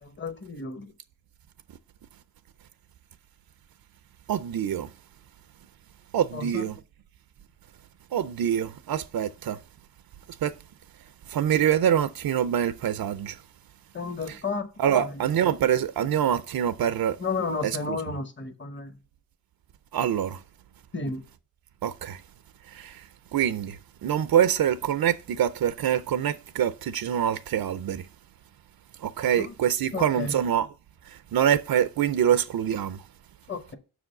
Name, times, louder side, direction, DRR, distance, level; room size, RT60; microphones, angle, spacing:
voice 1, 0.0-0.9 6.3-6.8 13.9-15.2 17.2-18.9 20.9-21.2 29.2-29.5 29.9-30.4 33.5-33.8, left 4 dB, 35° left, 0.9 m, -33 dB
voice 2, 4.3-4.9 6.1-6.7 8.1-9.6 10.4-10.5 11.3-13.4 14.8-17.2 17.6-17.7 19.9-20.4 21.8-22.2 22.7-23.0 23.3-28.0 29.0-30.7 31.3-33.0, right 9 dB, 85° right, 0.5 m, -25 dB
6.1 x 4.9 x 6.4 m
wide cardioid pair, 170°, 35 cm